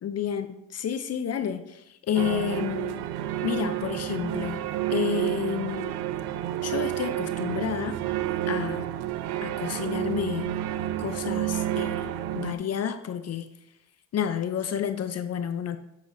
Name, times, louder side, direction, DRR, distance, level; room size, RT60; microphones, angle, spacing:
voice 1, 0.0-3.1 3.4-4.6 4.9-6.0 6.6-8.9 9.4-10.5 11.0-13.5 14.1-15.8, left 8 dB, 40° left, 9 dB, 0.7 m, -30 dB
sound 1, 2.1-12.5, right 13 dB, 70° right, 0.6 m, -30 dB
8.4 x 7.7 x 2.7 m, 0.84 s
supercardioid pair, 85°, 40 cm